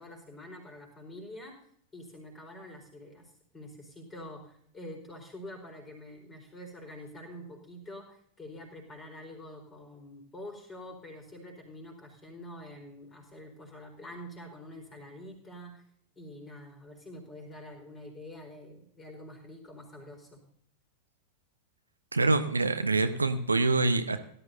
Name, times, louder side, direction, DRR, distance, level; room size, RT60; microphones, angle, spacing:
voice 1, 0.0-1.6 1.9-15.8 16.1-20.4, left 1 dB, 20° left, 2 dB, 4.5 m, -46 dB
voice 2, 22.1-24.2, right 3 dB, 80° right, 10 dB, 0.8 m, -25 dB
17.5 x 12.5 x 2.7 m, 0.65 s
figure-of-eight pair, 90°, 0 cm